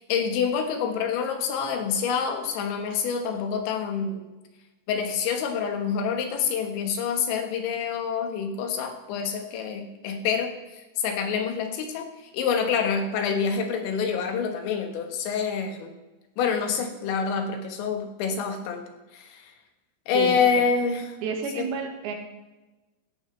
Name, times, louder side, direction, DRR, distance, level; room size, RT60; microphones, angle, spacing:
voice 1, 0.0-4.2 4.9-15.9 16.4-18.8 19.1-19.5 20.1-21.2 21.6-21.7, left 6 dB, 85° left, 5 dB, 3.7 m, -27 dB
voice 2, 21.2-22.2, right 6 dB, 80° right, 4 dB, 3.7 m, -30 dB
16.0 x 12.0 x 3.3 m, 1.1 s
omnidirectional pair, 5.1 m